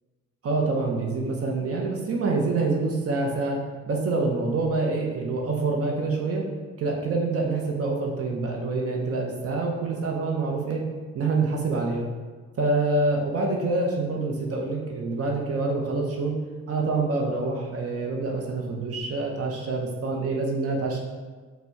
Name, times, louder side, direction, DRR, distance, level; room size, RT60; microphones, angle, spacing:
voice 1, 0.4-3.6 3.9-6.4 6.8-10.8 11.1-12.1 12.6-16.3 16.7-21.0, right 3 dB, 50° right, 0 dB, 0.7 m, -26 dB
4.3 x 2.2 x 4.4 m, 1.4 s
cardioid pair, 90°, 30 cm